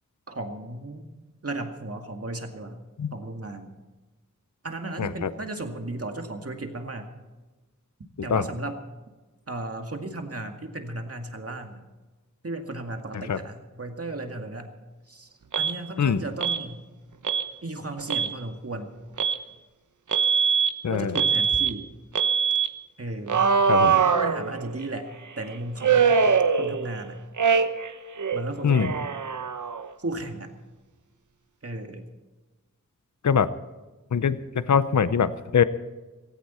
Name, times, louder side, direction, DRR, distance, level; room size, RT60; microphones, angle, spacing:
voice 1, 0.3-1.0 1.4-2.8 3.1-3.7 4.6-7.1 8.2-8.8 9.5-11.8 12.4-14.7 15.1-16.8 17.6-18.9 20.9-21.9 23.0-23.5 23.8-25.1 25.4-26.2 26.6-27.2 28.3-29.1 30.0-30.5 31.6-32.0, right 2 dB, 45° right, 4 dB, 2.1 m, -35 dB
voice 2, 5.0-5.3 8.3-8.4 13.1-13.4 16.0-16.2 20.8-21.1 23.7-23.9 28.6-28.9 33.2-33.5 34.1-34.4 34.7-35.6, left 7 dB, 60° left, 14 dB, 0.7 m, -22 dB
Alarm, 15.5-15.7 16.4-16.6 17.2-17.5 18.0-18.3 19.2-19.4 20.1-20.7 21.2-21.7 22.2-22.7 23.3-24.8 25.8-27.0 27.4-27.9 28.2-29.9, right 6 dB, 65° right, 0.9 m, -22 dB
16.5 x 16.5 x 4.4 m, 1.2 s
wide cardioid pair, 75°, 32 cm